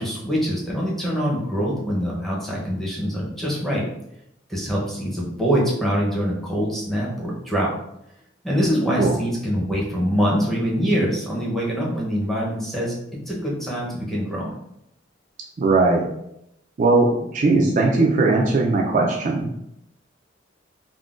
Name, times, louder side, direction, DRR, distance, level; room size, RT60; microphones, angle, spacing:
voice 1, 0.0-3.9 4.5-7.7 8.4-14.6, equal, ahead, -5 dB, 0.7 m, -24 dB
voice 2, 15.6-16.1 16.8-19.5, right 3 dB, 40° right, -1 dB, 0.3 m, -19 dB
3.6 x 2.1 x 2.4 m, 0.79 s
head